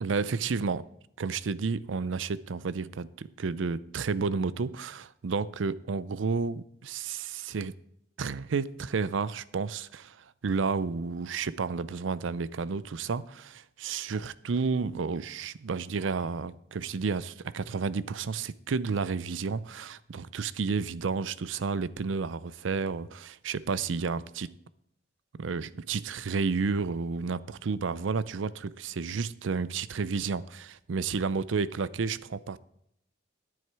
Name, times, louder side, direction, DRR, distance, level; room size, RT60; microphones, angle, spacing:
voice 1, 0.0-0.8 1.2-7.8 8.2-24.5 25.4-32.6, right 5 dB, 80° right, 0.5 m, -31 dB
10.5 x 9.7 x 4.7 m
head